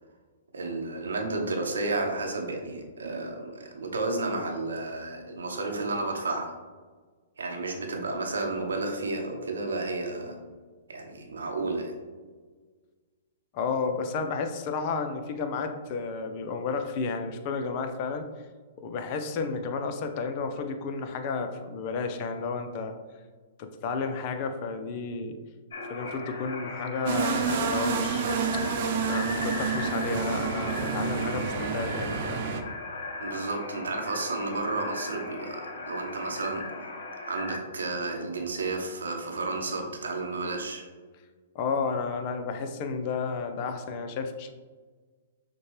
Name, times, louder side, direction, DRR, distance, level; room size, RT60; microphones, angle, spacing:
voice 1, 0.5-6.5 7.4-10.4 10.9-11.9 33.2-40.8, right 3 dB, 75° right, 2 dB, 0.8 m, -32 dB
voice 2, 13.5-18.3 18.8-22.9 23.6-25.4 25.9-28.6 29.1-32.4 41.5-44.5, left 4 dB, 40° left, 6 dB, 0.5 m, -32 dB
sound 1, 25.7-37.6, left 3 dB, 60° left, 0.9 m, -38 dB
sound 2, 27.1-32.6, right 5 dB, 50° right, 0.5 m, -29 dB
6.2 x 2.2 x 3.1 m, 1.4 s
hypercardioid pair, 120°, 0 cm